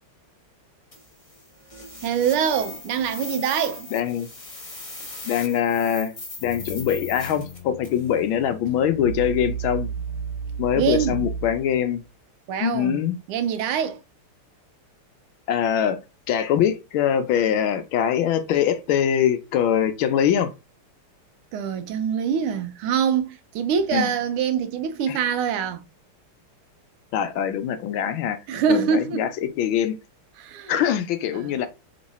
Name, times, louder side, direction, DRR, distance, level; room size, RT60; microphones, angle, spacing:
sound 1, 0.9-8.1, left 2 dB, 30° left, 0.6 m, -39 dB
voice 1, 2.0-3.9 10.8-11.2 12.5-14.0 21.5-25.8 28.5-29.3 30.4-30.8 31.3-31.6, right 7 dB, 85° right, 1.5 m, -24 dB
voice 2, 3.9-4.3 5.2-6.1 6.4-9.9 10.6-12.0 12.6-13.2 15.5-16.0 16.3-20.5 23.9-24.1 25.1-25.2 27.1-28.4 28.7-29.3 29.6-29.9 30.7-31.7, left 9 dB, 75° left, 1.3 m, -23 dB
sound 2, 6.4-11.8, right 5 dB, 55° left, 1.3 m, -33 dB
3.6 x 3.1 x 4.0 m
omnidirectional pair, 2.4 m